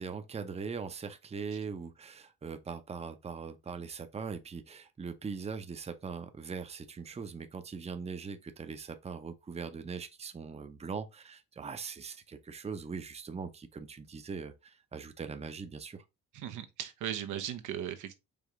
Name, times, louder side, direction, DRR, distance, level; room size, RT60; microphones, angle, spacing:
voice 1, 0.0-16.0, right 5 dB, 20° right, 0.6 m, -41 dB
voice 2, 16.3-18.1, right 10 dB, 80° right, 0.8 m, -37 dB
5.1 x 2.9 x 3.6 m
cardioid pair, 90°, 30 cm